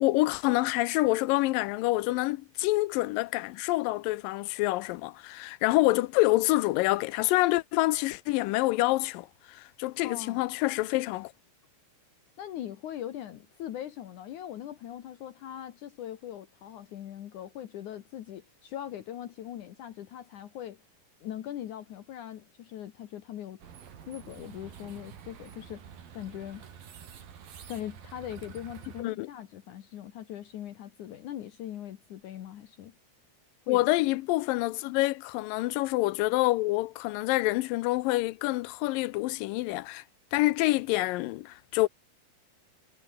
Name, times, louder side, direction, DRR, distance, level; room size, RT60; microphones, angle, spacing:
voice 1, 0.0-11.3 29.0-29.3 33.7-40.0 40.3-41.9, left 19 dB, 85° left, 2.3 m, -27 dB
voice 2, 10.0-10.4 12.4-20.8 21.2-23.6 24.1-25.8 26.1-26.7 27.7-32.9 33.7-33.8, left 11 dB, 65° left, 2.6 m, -40 dB
sound 1, 23.6-29.1, right 8 dB, 85° right, 4.7 m, -48 dB
omnidirectional pair, 4.0 m